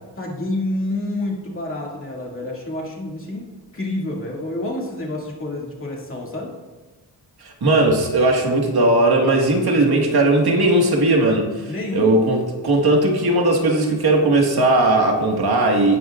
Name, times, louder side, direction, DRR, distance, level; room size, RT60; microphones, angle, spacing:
voice 1, 0.2-3.5 3.7-6.5 11.7-12.1, left 1 dB, 30° left, -3 dB, 2.3 m, -28 dB
voice 2, 7.4-16.0, right 2 dB, 65° right, 0 dB, 1.8 m, -18 dB
18.0 x 9.5 x 2.5 m, 1.3 s
wide cardioid pair, 145°, 41 cm